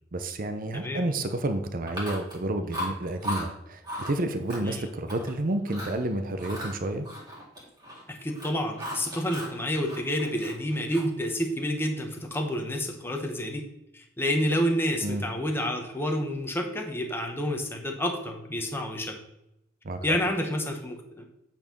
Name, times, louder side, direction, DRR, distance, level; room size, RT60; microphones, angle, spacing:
voice 1, 0.1-7.1 15.0-15.3 19.8-20.2, right 1 dB, 50° right, 8 dB, 0.7 m, -30 dB
Chewing mastication, 1.9-2.4 2.7-3.5 3.8-4.1 4.5-5.3 5.7-6.0 6.4-8.0 8.3-9.6 9.8-11.2, equal, 20° right, 2.5 m, -36 dB
voice 2, 8.1-13.7 13.9-19.2 20.0-21.3, equal, 10° left, 2 dB, 1.0 m, -29 dB
8.8 x 4.5 x 5.3 m, 0.83 s
head